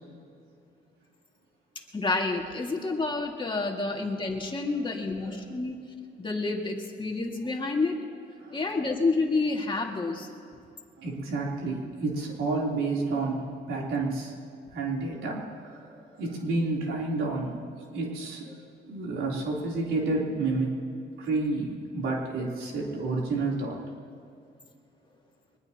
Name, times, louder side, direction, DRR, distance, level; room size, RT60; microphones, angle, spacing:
voice 1, 1.9-5.8 6.2-8.0 8.5-10.3, left 3 dB, 25° left, 1 dB, 2.3 m, -29 dB
voice 2, 4.7-5.4 8.4-8.8 11.0-14.3 14.7-17.6 17.9-20.7 21.2-23.8, right 3 dB, 90° right, -3 dB, 3.8 m, -30 dB
23.0 x 20.5 x 3.0 m, 2.5 s
cardioid pair, 90°, 20 cm